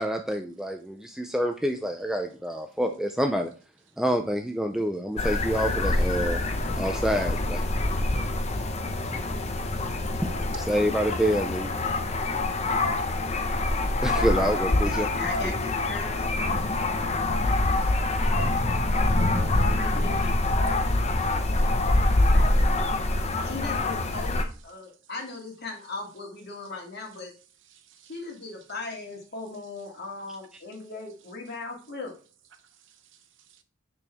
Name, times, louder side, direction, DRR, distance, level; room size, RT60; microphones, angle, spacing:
voice 1, 0.0-3.5 4.0-6.4 6.8-7.6 10.7-11.7 14.0-15.1, equal, 5° right, 0.5 m, -27 dB
sound 1, 5.2-24.4, left 2 dB, 35° left, 0.7 m, -25 dB
voice 2, 14.7-17.1 19.0-20.2 22.2-22.7 23.4-27.3 28.1-32.2, left 3 dB, 55° left, 2.3 m, -38 dB
voice 3, 22.9-23.5 24.8-24.9 27.7-28.2 32.5-33.6, right 9 dB, 65° right, 0.9 m, -59 dB
6.1 x 5.9 x 3.5 m
head